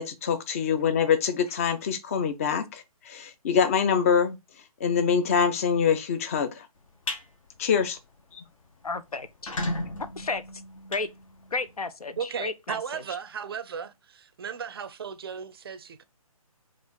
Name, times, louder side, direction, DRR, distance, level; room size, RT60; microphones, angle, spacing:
voice 1, 0.0-4.4 4.8-6.7 7.6-8.0 8.3-8.4, left 7 dB, 25° left, 0.5 m, -25 dB
sound 1, 6.8-7.2 7.7-7.9 8.3-8.4 8.6-8.7 9.2-11.8, left 1 dB, 60° left, 1.1 m, -34 dB
voice 2, 8.8-9.5 10.2-10.4 10.9-11.1 11.5-13.0, left 3 dB, 75° left, 0.7 m, -32 dB
voice 3, 12.2-16.0, right 7 dB, 40° right, 0.5 m, -36 dB
4.8 x 2.5 x 3.9 m
figure-of-eight pair, 140°, 19 cm